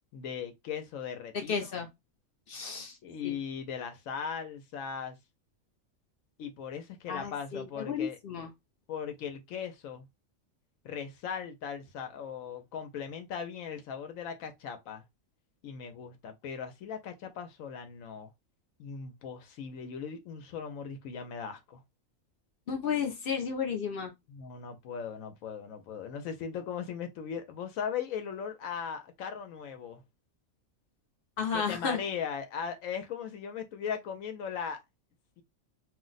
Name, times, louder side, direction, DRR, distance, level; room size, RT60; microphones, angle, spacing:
voice 1, 0.1-1.7 3.0-5.2 6.4-8.2 8.9-10.0 10.8-15.0 15.6-18.3 18.8-21.8 24.3-30.0 31.5-34.8 35.4-35.5, left 7 dB, 80° left, 1.0 m, -38 dB
voice 2, 1.3-1.9 2.5-3.0 3.2-3.3 7.1-8.5 22.7-24.1 31.4-32.0, left 6 dB, 60° left, 0.6 m, -33 dB
2.5 x 2.1 x 3.8 m
omnidirectional pair, 1.4 m